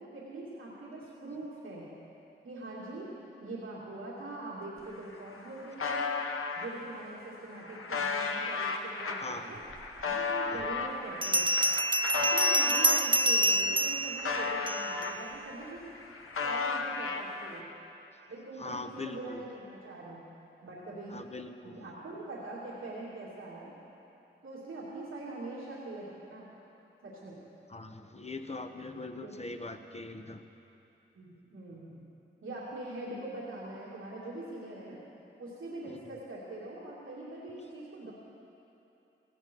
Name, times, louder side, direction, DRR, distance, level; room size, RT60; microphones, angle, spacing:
voice 1, 0.0-1.9 2.4-3.1 3.4-6.1 6.6-9.6 10.0-11.6 12.1-15.8 16.4-17.7 18.3-20.2 20.6-21.2 21.6-23.7 24.4-26.5 27.0-27.4 29.2-29.3 31.1-32.0 32.4-35.0 35.4-38.1, right 2 dB, 90° right, -8 dB, 2.6 m, -43 dB
sound 1, 4.8-4.9 5.1-6.7 7.3-13.1 13.6-15.5 15.8-17.6, left 4 dB, 85° left, 1.1 m, -34 dB
Bell, 10.0-10.1 11.2-15.1, right 1 dB, 25° right, 0.6 m, -27 dB
voice 2, 18.6-19.4 21.1-21.9 27.7-30.4 35.9-36.0, left 2 dB, 30° left, 6 dB, 1.2 m, -41 dB
18.5 x 16.0 x 4.7 m, 2.9 s
cardioid pair, 40°, 21 cm